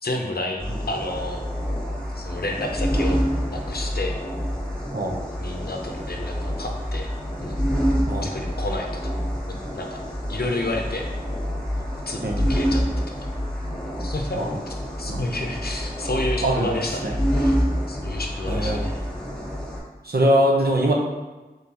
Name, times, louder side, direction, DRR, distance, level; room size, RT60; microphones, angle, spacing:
voice 1, 0.0-1.4 2.1-3.2 3.5-4.2 5.3-7.1 7.4-7.6 8.2-9.0 9.5-10.0 10.3-11.1 11.7-13.3 14.0-17.6 17.9-19.0, left 2 dB, 75° left, 1 dB, 0.6 m, -30 dB
sound 1, 0.6-19.8, equal, 5° left, 1.1 m, -27 dB
voice 2, 18.5-18.8 20.0-20.9, right 1 dB, 75° right, 0 dB, 0.7 m, -21 dB
3.8 x 3.7 x 2.9 m, 1.2 s
wide cardioid pair, 45°, 16 cm